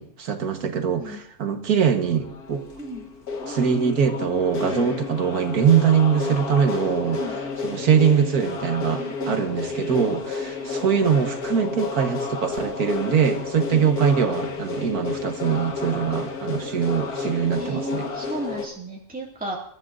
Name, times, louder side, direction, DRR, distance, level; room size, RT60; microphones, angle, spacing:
voice 1, 0.0-2.6 3.5-7.2 7.6-18.1, right 7 dB, 85° right, 5 dB, 1.8 m, -22 dB
sound 1, 1.9-18.7, left 4 dB, 90° left, 2.0 m, -31 dB
voice 2, 4.6-4.9 7.1-7.4 8.9-9.5 10.1-10.2 13.6-13.8 17.5-19.6, right 1 dB, 5° right, -3 dB, 2.2 m, -34 dB
27.5 x 13.0 x 2.6 m, 0.66 s
omnidirectional pair, 1.6 m